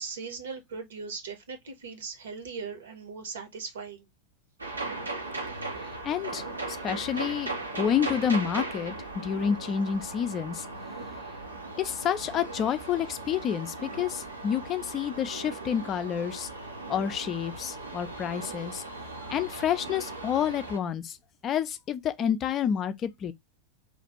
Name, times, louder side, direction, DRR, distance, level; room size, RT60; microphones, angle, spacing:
voice 1, 0.0-4.1, right 5 dB, 65° right, 1.1 m, -39 dB
sound 1, 4.6-20.8, right 2 dB, 80° right, 0.9 m, -38 dB
voice 2, 5.8-10.7 11.8-16.5 16.9-18.8 19.2-21.2 21.4-23.3, left 8 dB, 30° left, 0.4 m, -29 dB
3.1 x 2.5 x 4.2 m
figure-of-eight pair, 90°, 0 cm